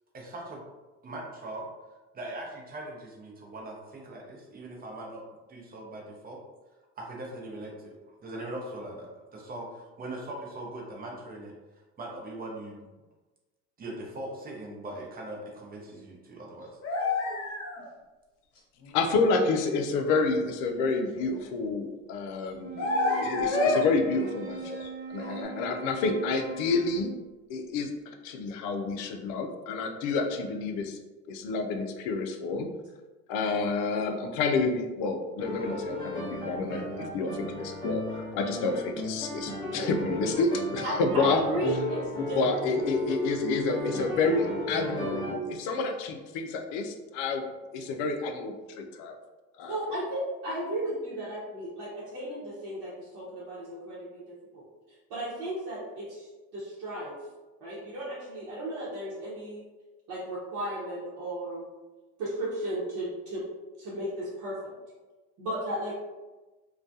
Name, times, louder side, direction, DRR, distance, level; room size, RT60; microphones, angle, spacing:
voice 1, 0.1-0.6 1.0-1.7 2.1-5.2 5.5-6.4 7.0-12.8 13.8-16.7, right 1 dB, 25° right, -1 dB, 0.7 m, -40 dB
sound 1, 16.6-17.8 18.9-19.0 21.2-21.4 22.8-23.8 24.1-24.9 25.2-25.4, left 3 dB, 45° left, 0.9 m, -29 dB
voice 2, 18.9-24.8 25.1-27.1 27.5-27.9 28.2-31.0 31.3-32.7 33.3-41.4 42.4-47.4 47.7-49.1 49.6-49.8, left 3 dB, 65° left, 4 dB, 0.5 m, -29 dB
Wind instrument woodwind instrument, 22.5-27.3, right 5 dB, 80° right, 0.5 m, -40 dB
sound 2, 35.4-45.4, left 1 dB, 15° left, 0.8 m, -35 dB
voice 3, 40.8-42.7 49.7-54.6 55.1-57.2 57.6-59.6 60.1-61.7 62.2-63.4 63.8-64.7 65.4-66.0, right 1 dB, 65° right, -8 dB, 0.9 m, -35 dB
2.3 x 2.2 x 2.6 m, 1.2 s
hypercardioid pair, 80°, 35 cm